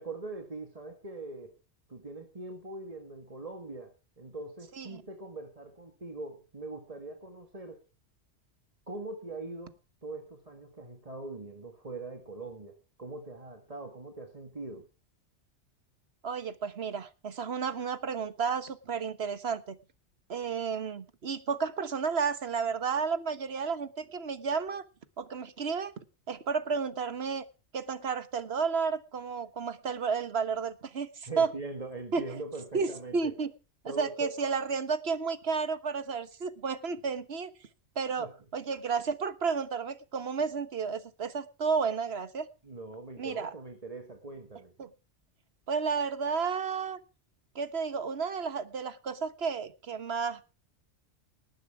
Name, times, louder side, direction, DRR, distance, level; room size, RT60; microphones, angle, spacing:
voice 1, 0.0-1.5 1.9-7.8 8.9-9.8 10.0-14.9 31.3-33.3 33.9-34.4 38.2-38.3 42.6-44.7, right 2 dB, 30° right, 4 dB, 1.9 m, -42 dB
voice 2, 16.2-19.8 20.3-24.8 25.2-25.9 26.3-27.4 27.7-31.5 32.1-32.2 32.7-33.5 33.8-37.5 37.9-38.3 38.5-42.5 43.2-43.5 44.8-44.9 45.7-47.0 47.5-50.4, right 5 dB, 60° right, 12 dB, 1.5 m, -32 dB
19.5 x 9.9 x 4.8 m, 0.33 s
omnidirectional pair, 1.2 m